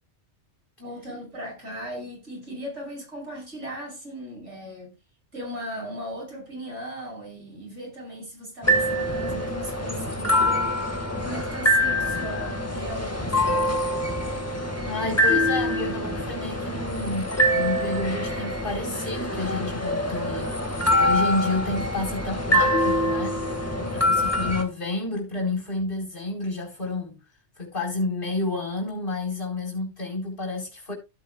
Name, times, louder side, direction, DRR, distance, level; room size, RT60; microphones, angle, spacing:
voice 1, 0.8-4.9 5.3-10.8 11.2-13.7 23.8-24.2, equal, 85° right, 6.6 m, -37 dB
sound 1, 8.6-24.6, left 1 dB, 15° left, 1.7 m, -25 dB
voice 2, 14.9-23.4 23.9-27.2 27.6-30.9, left 2 dB, 50° left, 4.6 m, -30 dB
16.0 x 8.5 x 2.3 m
omnidirectional pair, 1.2 m